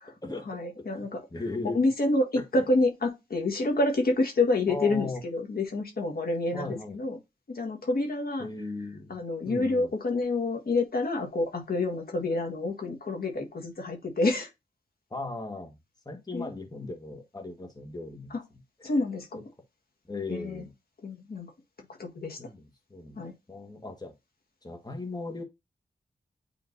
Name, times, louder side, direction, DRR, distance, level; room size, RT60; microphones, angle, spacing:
voice 1, 0.5-1.2 1.7-7.2 7.5-8.5 9.1-14.5 16.3-16.5 18.8-19.4 20.3-20.6 21.0-21.5 22.0-22.4 23.2-23.3, left 2 dB, 60° left, 1.7 m, -28 dB
voice 2, 1.3-1.8 2.3-2.6 4.7-5.2 6.5-7.0 8.4-9.2 9.4-9.9 15.1-15.8 16.0-18.3 18.8-18.9 20.1-20.7 22.4-24.1 24.6-25.4, left 2 dB, 25° left, 1.6 m, -37 dB
9.4 x 3.7 x 2.7 m
cardioid pair, 55°, 17 cm